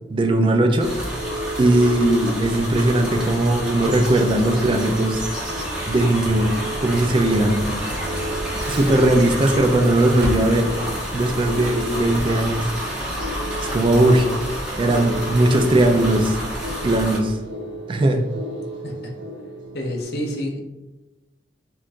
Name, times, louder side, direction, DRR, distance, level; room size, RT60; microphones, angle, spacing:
voice 1, 0.1-0.9 1.6-5.2 5.9-6.5 6.8-7.8 8.7-10.7 11.1-14.3 14.8-16.4 16.8-17.4 17.9-18.2, right 1 dB, 25° right, 5 dB, 0.3 m, -19 dB
sound 1, 0.6-20.0, right 1 dB, 90° right, 1.1 m, -35 dB
sound 2, 0.8-17.2, equal, 5° right, 0.7 m, -29 dB
Crackle, 8.6-15.4, equal, 65° right, 1.1 m, -35 dB
voice 2, 18.8-19.1 19.7-20.6, equal, 60° left, 2 dB, 0.6 m, -28 dB
4.4 x 2.3 x 2.5 m, 1.1 s
head